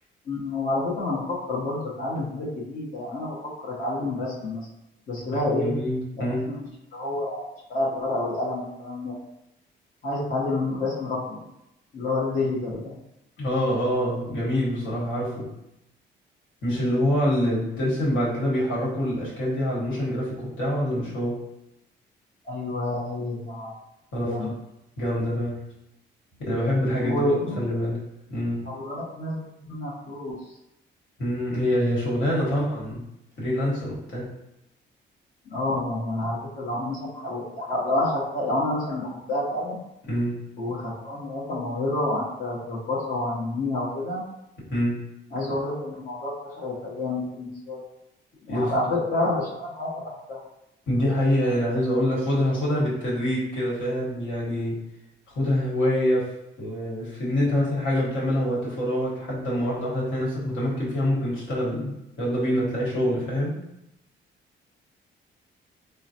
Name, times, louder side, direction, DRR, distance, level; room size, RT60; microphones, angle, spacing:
voice 1, 0.3-3.3 3.6-4.7 5.1-5.7 6.2-7.4 7.7-9.1 10.0-11.4 11.9-12.9 22.4-23.7 24.2-24.5 27.0-27.6 28.7-29.4 29.7-30.4 35.5-39.8 40.6-44.2 45.3-46.3 46.6-47.8 48.5-50.4, left 2 dB, 40° left, -7 dB, 0.9 m, -28 dB
voice 2, 5.3-6.5 13.4-15.5 16.6-21.4 24.1-24.5 25.0-25.6 26.4-27.3 27.6-28.0 28.3-28.6 31.2-33.0 33.4-34.3 40.1-40.3 44.7-45.0 48.5-49.0 50.9-54.8 55.3-56.3 56.6-63.5, equal, 75° left, -6 dB, 1.4 m, -25 dB
3.8 x 2.1 x 2.7 m, 0.86 s
cardioid pair, 90°, 20 cm